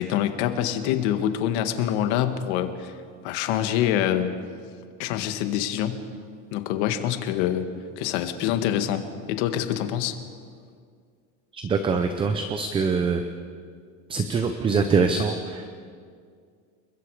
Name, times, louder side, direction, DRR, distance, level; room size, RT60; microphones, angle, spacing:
voice 1, 0.0-2.9 3.2-4.3 5.0-6.0 6.5-7.7 8.0-10.2, left 10 dB, 70° left, 8 dB, 1.8 m, -25 dB
voice 2, 11.5-13.2 14.1-15.7, right 5 dB, 15° right, 7 dB, 0.7 m, -24 dB
29.5 x 22.0 x 4.9 m, 2.1 s
cardioid pair, 180°, 35 cm